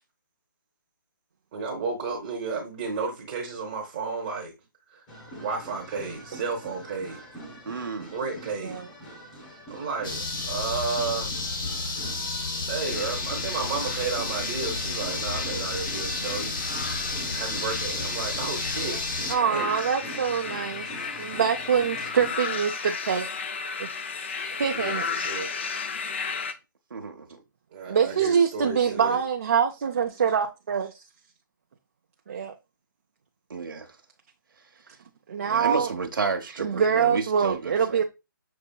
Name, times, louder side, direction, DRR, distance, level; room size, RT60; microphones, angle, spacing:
voice 1, 1.5-4.5 4.9-5.1 5.3-7.2 8.1-8.8 9.7-11.3 12.7-16.5 17.3-19.0 19.4-19.9 24.7-25.5 27.7-29.2, right 4 dB, 25° right, 0.9 m, -32 dB
sound 1, 5.1-22.3, right 1 dB, 20° left, 1.0 m, -43 dB
voice 2, 7.7-8.1 26.9-27.4 33.5-33.9 35.5-38.0, right 4 dB, 75° right, 0.9 m, -31 dB
sound 2, 10.0-19.3, left 3 dB, 75° left, 1.2 m, -31 dB
sound 3, 12.8-26.5, left 5 dB, 35° left, 0.4 m, -35 dB
voice 3, 19.3-23.3 23.8-23.9 24.4-25.1 27.9-31.0 32.3-32.5 35.3-35.9 36.6-38.0, right 7 dB, 40° right, 0.5 m, -25 dB
6.6 x 2.7 x 2.3 m
hypercardioid pair, 165°, 11 cm